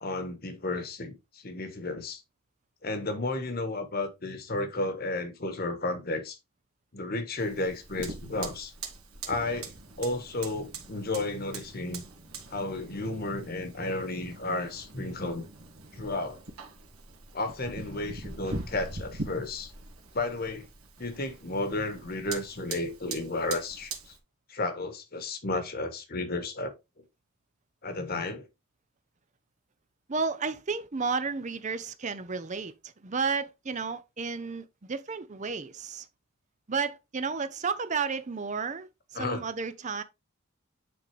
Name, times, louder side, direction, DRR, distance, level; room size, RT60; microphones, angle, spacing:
voice 1, 0.0-2.2 2.8-6.4 6.9-8.7 9.2-12.0 12.5-15.5 15.9-16.4 17.3-19.7 20.1-20.7 21.0-24.1 24.5-26.7 27.8-28.4 39.1-39.4, left 2 dB, 45° left, 1.3 m, -33 dB
Fire, 7.4-24.2, right 3 dB, 80° right, 2.1 m, -43 dB
voice 2, 30.1-36.1 36.7-40.0, right 5 dB, 35° right, 0.6 m, -32 dB
9.3 x 3.9 x 3.3 m
head